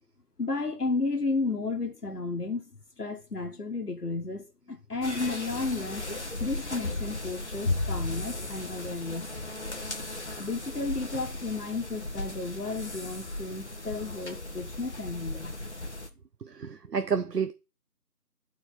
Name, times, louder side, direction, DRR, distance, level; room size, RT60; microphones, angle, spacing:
voice 1, 0.4-2.6 3.0-6.0 6.4-9.3 10.4-15.6, left 3 dB, 65° left, 1.6 m, -33 dB
sound 1, 5.0-16.1, left 2 dB, 45° left, 1.1 m, -36 dB
voice 2, 16.4-17.5, right 6 dB, 75° right, 0.9 m, -30 dB
12.0 x 4.5 x 4.2 m
figure-of-eight pair, 175°, 49 cm